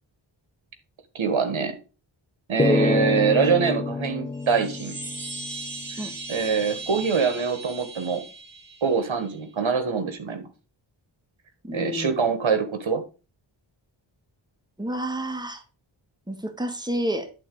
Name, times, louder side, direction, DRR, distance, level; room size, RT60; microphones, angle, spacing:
voice 1, 1.1-1.8 2.5-5.0 6.3-8.2 8.8-10.5 11.7-13.0, right 5 dB, 75° right, 1.7 m, -24 dB
sound 1, 2.6-6.0, left 3 dB, 10° left, 0.4 m, -27 dB
sound 2, 4.3-9.4, right 3 dB, 45° right, 2.5 m, -38 dB
voice 2, 11.6-12.2 14.8-15.6 16.3-17.3, equal, 10° right, 1.6 m, -30 dB
11.0 x 3.9 x 4.9 m
cardioid pair, 55°, 48 cm